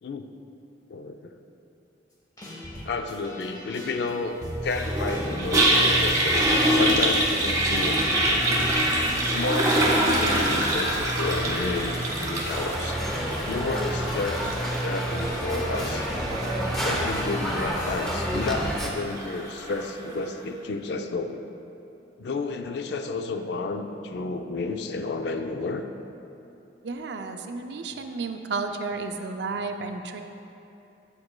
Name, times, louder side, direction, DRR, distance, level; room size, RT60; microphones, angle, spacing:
voice 1, 0.9-1.4 2.8-4.4 4.6-8.0 8.3-8.7 9.3-13.0 13.5-16.1 16.8-21.4 22.2-25.8, left 3 dB, 60° left, 7 dB, 0.4 m, -31 dB
sound 1, 2.4-18.8, equal, 20° left, 1.0 m, -34 dB
Toilet flush, 4.7-19.9, right 1 dB, 20° right, 1.0 m, -26 dB
sound 2, 12.5-18.9, equal, ahead, 0.5 m, -31 dB
voice 2, 26.8-30.2, right 4 dB, 65° right, 6 dB, 0.4 m, -32 dB
8.2 x 7.7 x 2.2 m, 2.8 s
head